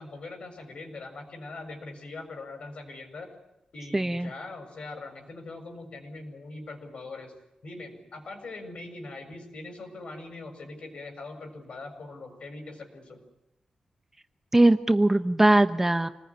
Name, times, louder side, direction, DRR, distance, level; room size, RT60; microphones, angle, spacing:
voice 1, 0.0-3.3 3.7-7.3 7.6-13.2, left 3 dB, 60° left, 5 dB, 6.8 m, -42 dB
voice 2, 3.9-4.3 14.5-16.1, right 1 dB, 15° right, 9 dB, 1.0 m, -21 dB
28.0 x 20.0 x 9.9 m, 0.89 s
wide cardioid pair, 140°, 2 cm